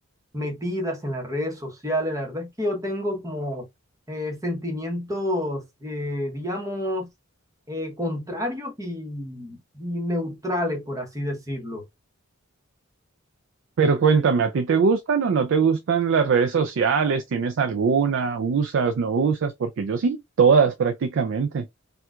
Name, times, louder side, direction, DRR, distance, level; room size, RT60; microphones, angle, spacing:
voice 1, 0.3-3.7 4.1-7.1 7.7-11.8, left 1 dB, 15° right, 1.0 m, -29 dB
voice 2, 13.8-21.7, right 5 dB, 60° right, 0.4 m, -21 dB
4.3 x 2.3 x 2.3 m
head